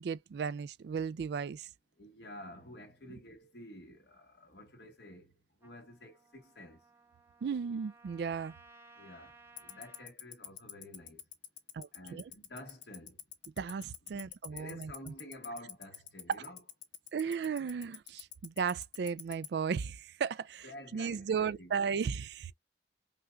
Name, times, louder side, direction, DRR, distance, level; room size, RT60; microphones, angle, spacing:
voice 1, 0.0-1.7 7.4-8.5 11.7-12.2 13.6-14.9 17.1-20.7 20.9-22.5, right 6 dB, 60° right, 0.3 m, -35 dB
voice 2, 2.0-5.3 5.6-6.8 9.0-9.3 9.6-11.2 11.9-13.2 14.1-16.6 17.8-17.9 20.6-21.8, left 1 dB, 60° left, 1.5 m, -50 dB
Trumpet, 5.6-10.1, right 3 dB, 10° right, 0.8 m, -59 dB
Tick-tock, 9.6-19.5, left 14 dB, 80° left, 0.9 m, -43 dB
5.6 x 2.4 x 2.3 m
head